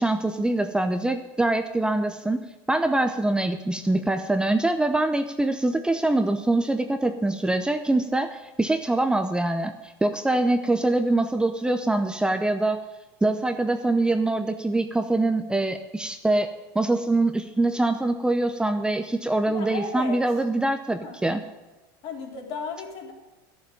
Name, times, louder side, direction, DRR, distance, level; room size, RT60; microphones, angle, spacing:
voice 1, 0.0-12.8 13.2-21.4, right 2 dB, 5° right, 7 dB, 0.8 m, -24 dB
voice 2, 19.5-20.2 21.0-21.2 22.0-23.1, left 5 dB, 50° left, 0 dB, 3.6 m, -35 dB
12.0 x 7.1 x 9.9 m, 1.1 s
supercardioid pair, 110°, 12 cm